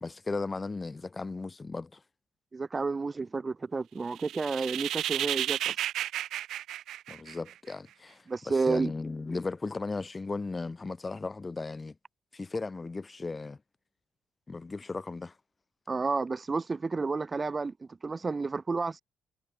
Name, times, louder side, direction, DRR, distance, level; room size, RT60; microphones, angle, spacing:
voice 1, 0.0-2.0 7.1-11.9 12.3-13.6 14.5-15.4, left 3 dB, 25° left, 0.8 m, -36 dB
voice 2, 2.5-5.7 8.3-8.9 15.9-19.0, right 4 dB, 30° right, 0.8 m, -31 dB
sound 1, 4.1-7.7, right 12 dB, 80° right, 0.5 m, -33 dB
cardioid pair, 90°, 0 cm